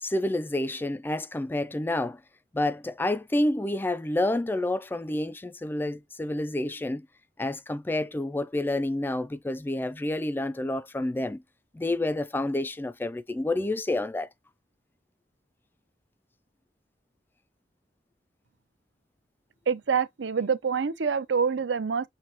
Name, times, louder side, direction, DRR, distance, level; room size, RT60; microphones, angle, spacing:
voice 1, 0.0-2.2 2.5-7.1 7.4-11.4 11.7-14.3, left 1 dB, 10° left, 0.3 m, -29 dB
voice 2, 19.7-22.1, right 6 dB, 80° right, 0.6 m, -26 dB
6.2 x 2.6 x 2.9 m
head